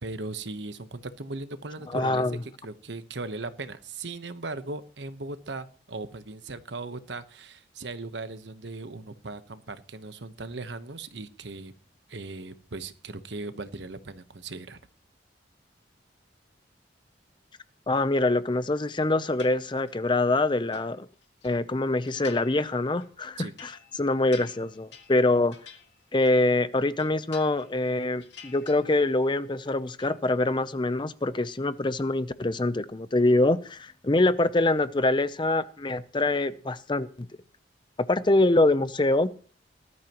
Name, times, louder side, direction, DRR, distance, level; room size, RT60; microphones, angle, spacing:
voice 1, 0.0-11.7 12.1-14.8 23.4-23.5, right 3 dB, 75° right, 11 dB, 1.1 m, -38 dB
voice 2, 1.9-2.4 17.9-21.1 21.4-25.5 26.1-37.3 38.0-39.3, left 2 dB, 25° left, 14 dB, 0.6 m, -25 dB
sound 1, 19.4-20.1 20.5-21.5 22.1-22.7 23.0-26.5 26.8-27.9 28.2-29.3 29.5-30.2, left 7 dB, 75° left, 1.9 m, -50 dB
19.5 x 12.5 x 3.0 m, 0.41 s
head